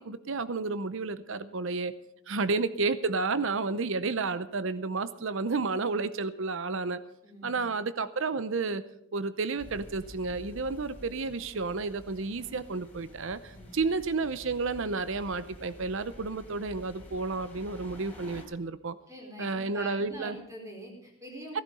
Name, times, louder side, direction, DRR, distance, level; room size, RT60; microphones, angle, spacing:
voice 1, 0.0-1.9 2.3-7.0 7.4-8.8 9.1-19.0 19.4-20.4 21.5-21.6, right 4 dB, 60° right, 14 dB, 0.7 m, -31 dB
voice 2, 7.2-7.8 13.5-13.9 19.1-21.6, equal, 15° right, 0 dB, 4.2 m, -45 dB
sound 1, 9.6-18.4, equal, 10° left, 3.6 m, -49 dB
17.0 x 11.5 x 5.4 m, 0.80 s
head